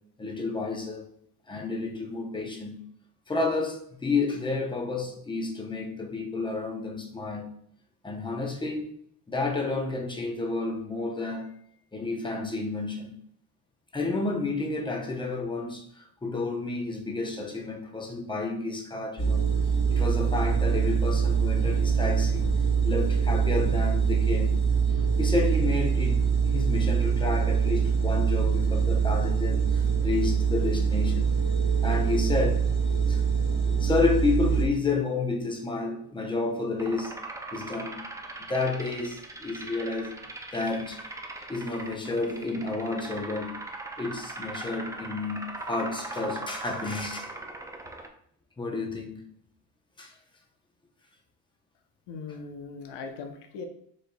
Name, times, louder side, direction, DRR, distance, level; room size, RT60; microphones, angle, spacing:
voice 1, 0.2-1.1 1.5-2.8 3.3-7.5 8.0-8.8 9.3-11.5 11.9-13.2 13.9-19.4 19.9-22.5 22.8-24.6 25.2-31.3 31.8-32.7 33.1-33.2 33.8-37.2 37.5-38.1 38.4-40.2 40.5-41.0 41.5-43.6 44.0-47.3 48.6-49.3 50.0-50.1, left 3 dB, 10° left, 1 dB, 0.7 m, -30 dB
sound 1, 19.2-34.6, right 6 dB, 45° left, 1.6 m, -24 dB
sound 2, 36.8-48.1, right 2 dB, 10° right, 0.3 m, -40 dB
voice 2, 52.1-53.7, left 4 dB, 80° left, 4 dB, 0.8 m, -39 dB
4.9 x 4.1 x 2.2 m, 0.67 s
cardioid pair, 115°, 40 cm